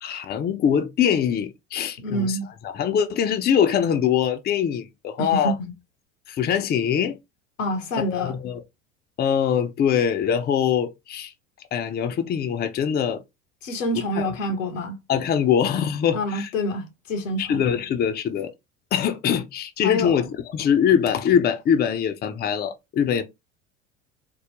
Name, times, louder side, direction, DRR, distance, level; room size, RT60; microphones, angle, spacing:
voice 1, 0.0-2.4 2.6-5.5 6.3-7.2 8.0-8.6 9.2-11.3 11.7-13.2 14.2-14.4 15.1-16.5 17.4-18.5 18.9-23.2, left 8 dB, 25° left, 0.5 m, -23 dB
voice 2, 2.0-2.5 5.2-5.7 7.6-8.4 13.6-15.0 16.1-17.6 19.8-20.1, left 1 dB, 80° left, 0.9 m, -27 dB
3.7 x 2.1 x 3.0 m
hypercardioid pair, 75°, 38 cm